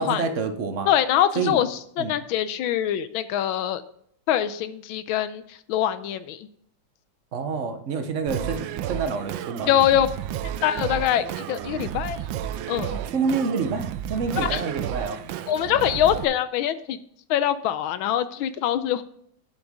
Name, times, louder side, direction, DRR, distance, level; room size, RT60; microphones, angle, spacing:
voice 1, 0.0-0.9 1.4-1.6 2.0-2.2 7.3-9.7 13.0-15.2, right 5 dB, 50° right, 8 dB, 0.9 m, -28 dB
voice 2, 0.9-3.8 4.3-6.5 9.7-10.1 10.6-12.2 12.7-13.0 14.4-14.6 15.5-17.0 17.3-19.0, left 11 dB, 85° left, 13 dB, 1.4 m, -24 dB
Singing, 8.3-16.2, right 11 dB, 75° right, 1.3 m, -32 dB
9.1 x 7.8 x 3.6 m, 0.67 s
omnidirectional pair, 2.2 m